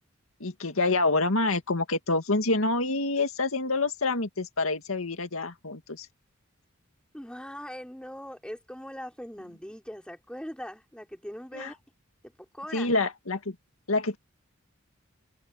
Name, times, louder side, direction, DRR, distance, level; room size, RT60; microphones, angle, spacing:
voice 1, 0.4-6.1 11.5-11.7 12.7-13.6 13.9-14.2, left 3 dB, 80° left, 2.2 m, -27 dB
voice 2, 7.1-11.8 12.4-12.9, equal, 5° left, 4.6 m, -41 dB
head